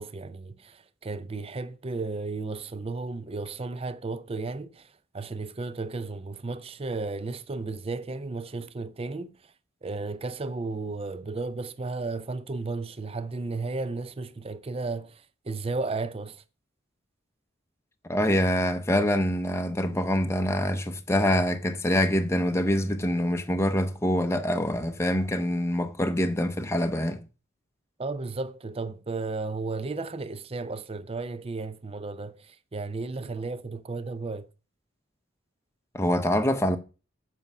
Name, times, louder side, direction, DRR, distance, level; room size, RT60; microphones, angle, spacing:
voice 1, 0.0-9.5 9.8-16.4 28.0-34.5, right 3 dB, 30° right, 0.5 m, -34 dB
voice 2, 18.1-27.2 35.9-36.8, left 1 dB, 15° left, 0.6 m, -25 dB
7.7 x 5.4 x 5.9 m
head